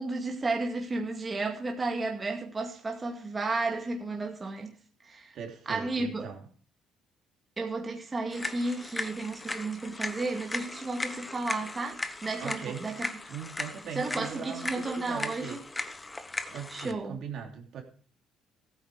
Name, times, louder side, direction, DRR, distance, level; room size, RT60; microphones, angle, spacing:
voice 1, 0.0-4.7 5.0-5.4 5.7-6.4 7.6-13.1 14.0-15.6 16.7-17.2, right 3 dB, 30° right, 2.2 m, -33 dB
voice 2, 5.3-6.5 12.4-12.9 13.3-15.6 16.5-17.8, right 7 dB, 65° right, 3.1 m, -40 dB
sound 1, 8.3-16.9, left 2 dB, 20° left, 1.2 m, -38 dB
14.5 x 8.5 x 4.9 m
supercardioid pair, 75°, 0 cm